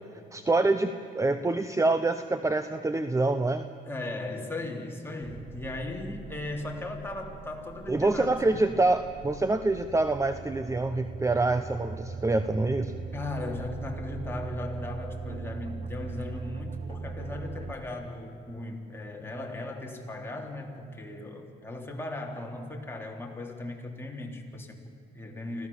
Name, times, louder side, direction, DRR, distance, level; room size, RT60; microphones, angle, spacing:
voice 1, 0.3-3.7 7.9-12.9, right 2 dB, 15° right, 10 dB, 0.9 m, -26 dB
voice 2, 3.8-8.6 13.1-25.7, left 2 dB, 10° left, 0 dB, 3.7 m, -37 dB
sound 1, 5.2-17.7, right 4 dB, 35° right, 1.0 m, -40 dB
25.0 x 16.5 x 7.3 m, 2.7 s
cardioid pair, 90°, 20 cm